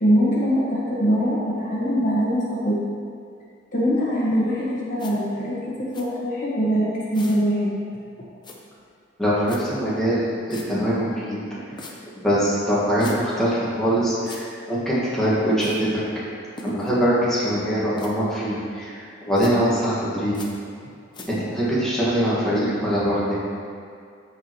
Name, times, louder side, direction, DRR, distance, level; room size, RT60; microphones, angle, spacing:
voice 1, 0.0-2.8 3.7-7.8, equal, 45° left, -7 dB, 1.5 m, -22 dB
sound 1, 5.0-5.1 5.9-6.0 7.1-7.4 8.4-8.6 9.5-9.6 10.5-10.7 11.8-11.9 13.0-13.2 14.3-14.4 15.6-15.8 16.6-16.9 18.0-18.1 19.4-19.5 20.3-20.5 21.1-21.2, left 2 dB, 25° left, 0.8 m, -39 dB
voice 2, 9.2-10.2 10.5-11.4 12.2-16.1 16.6-20.5 21.3-23.4, equal, ahead, -10 dB, 1.8 m, -23 dB
13.5 x 4.8 x 3.1 m, 2.3 s
head